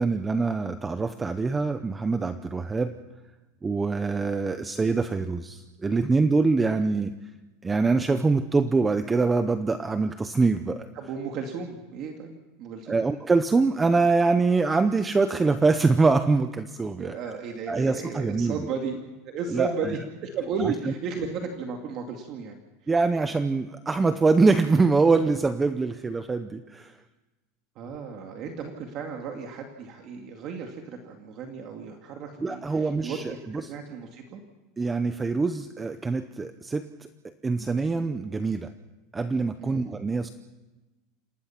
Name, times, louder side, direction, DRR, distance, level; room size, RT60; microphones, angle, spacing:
voice 1, 0.0-2.9 3.6-7.1 7.6-10.9 12.9-17.2 17.7-18.7 19.5-20.0 20.6-20.7 22.9-27.0 32.4-33.7 34.8-37.1 37.4-38.7 39.1-40.3, right 3 dB, 10° right, 10 dB, 0.7 m, -24 dB
voice 2, 11.0-13.0 17.0-19.0 19.2-22.6 27.8-34.4 39.6-39.9, right 5 dB, 35° right, 3 dB, 2.2 m, -34 dB
27.5 x 18.5 x 5.9 m, 1.1 s
supercardioid pair, 170°, 0 cm